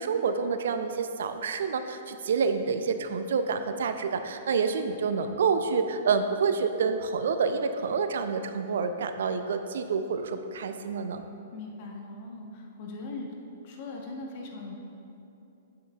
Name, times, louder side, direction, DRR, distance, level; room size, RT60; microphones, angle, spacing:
voice 1, 0.0-11.2, right 5 dB, 70° right, 8 dB, 0.4 m, -28 dB
voice 2, 11.5-13.3 13.6-14.8, left 3 dB, 50° left, 0 dB, 1.1 m, -40 dB
7.6 x 7.6 x 2.3 m, 2.8 s
hypercardioid pair, 120°, 0 cm